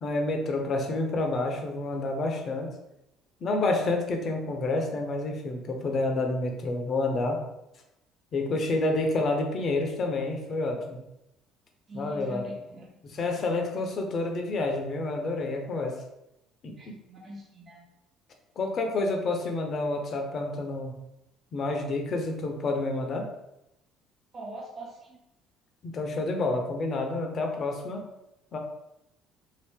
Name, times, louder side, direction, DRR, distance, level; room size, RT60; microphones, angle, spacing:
voice 1, 0.0-2.7 3.4-7.4 8.3-11.0 11.9-12.5 13.0-16.0 16.6-16.9 18.6-21.0 21.5-23.3 25.8-28.0 28.5-28.6, left 2 dB, 50° left, 3 dB, 0.7 m, -29 dB
voice 2, 11.9-12.9 13.4-13.5 16.8-17.8 24.3-25.2, equal, 35° right, -4 dB, 1.0 m, -42 dB
2.8 x 2.5 x 3.5 m, 0.88 s
supercardioid pair, 70°, 0 cm